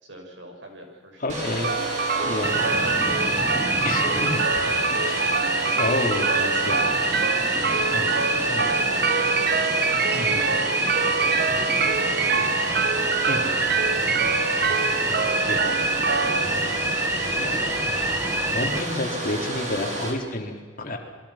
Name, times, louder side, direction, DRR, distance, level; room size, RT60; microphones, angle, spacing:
voice 1, 0.0-1.8 2.1-6.0 7.2-8.9 9.9-10.9 11.3-13.4 13.9-15.5 15.8-16.8 17.5-17.9, equal, 80° right, 2 dB, 6.4 m, -42 dB
voice 2, 1.2-1.7 2.2-2.6 3.8-4.5 5.0-5.3 5.8-6.9 7.9-8.1 8.5-8.7 10.1-10.5 12.3-12.5 13.3-13.6 15.4-15.7 17.3-17.6 18.2-18.3 18.5-21.0, left 2 dB, 50° left, 2 dB, 3.7 m, -30 dB
Domestic sounds home sounds, 1.3-20.1, right 1 dB, 40° right, 5.4 m, -31 dB
sound 1, 1.6-17.6, right 5 dB, 60° right, 1.0 m, -26 dB
sound 2, 2.4-18.8, right 1 dB, 15° right, 1.3 m, -26 dB
28.0 x 22.5 x 6.0 m, 1.5 s
head